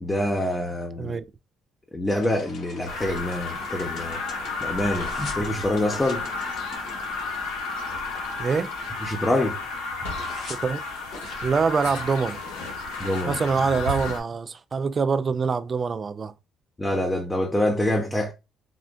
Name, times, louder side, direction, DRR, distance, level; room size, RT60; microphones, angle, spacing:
voice 1, 0.0-1.1 1.9-4.2 4.6-6.3 9.0-9.6 13.0-13.4 16.8-18.3, left 1 dB, 15° left, 0.6 m, -26 dB
sound 1, 2.1-9.8 10.1-13.2, left 3 dB, 65° left, 1.4 m, -43 dB
sound 2, 2.9-14.2, left 3 dB, 90° left, 0.8 m, -32 dB
voice 2, 8.4-8.7 10.4-10.8 11.4-12.4 13.3-16.3, right 5 dB, 40° right, 0.3 m, -25 dB
3.7 x 2.1 x 2.5 m
hypercardioid pair, 55°, 0 cm